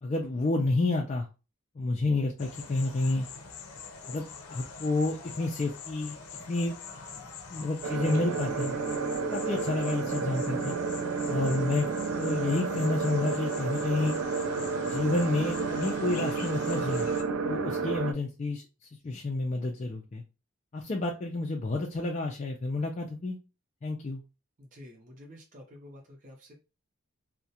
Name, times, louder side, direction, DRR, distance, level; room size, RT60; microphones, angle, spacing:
voice 1, 0.0-1.3 1.8-3.3 4.1-6.8 7.2-8.7 9.3-10.7 11.3-11.9 12.2-14.2 14.9-17.1 17.4-18.6 19.0-20.2 20.7-23.4 23.8-24.2, left 2 dB, 30° left, 0 dB, 0.3 m, -30 dB
sound 1, 2.4-17.2, left 5 dB, 90° left, 0.5 m, -44 dB
sound 2, 7.8-18.1, right 4 dB, 75° right, 0.4 m, -31 dB
voice 2, 24.6-26.6, left 1 dB, 35° right, 0 dB, 0.6 m, -50 dB
2.3 x 2.1 x 2.7 m, 0.29 s
head